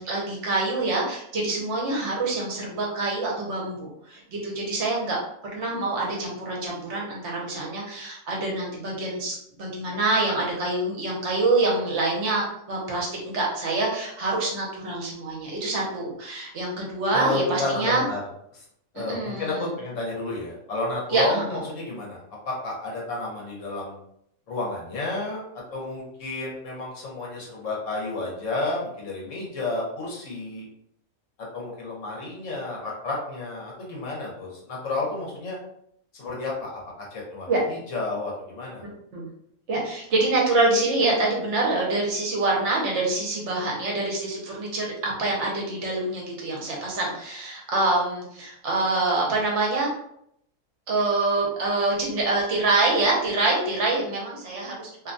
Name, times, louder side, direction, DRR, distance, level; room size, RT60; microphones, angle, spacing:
voice 1, 0.0-18.0 18.9-19.7 21.1-21.4 37.5-37.6 38.8-39.3 39.7-49.9 50.9-55.1, right 2 dB, 65° right, -2 dB, 1.0 m, -26 dB
voice 2, 17.1-18.2 18.5-18.6 18.9-22.2 22.4-23.9 24.5-30.6 31.5-35.6 36.2-38.8, left 3 dB, 70° left, -3 dB, 1.2 m, -31 dB
2.7 x 2.2 x 2.5 m, 0.72 s
omnidirectional pair, 1.4 m